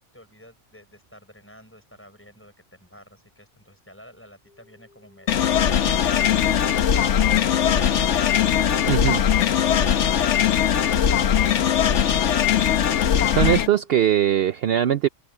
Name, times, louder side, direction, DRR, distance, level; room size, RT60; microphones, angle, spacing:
voice 1, 0.1-7.1, equal, 10° left, 6.6 m, -49 dB
sound 1, 4.5-14.5, left 3 dB, 40° left, 8.3 m, -58 dB
sound 2, 5.3-13.7, left 9 dB, 75° left, 1.2 m, -20 dB
voice 2, 8.9-9.2 13.3-15.1, right 11 dB, 60° right, 0.8 m, -20 dB
omnidirectional pair, 1.3 m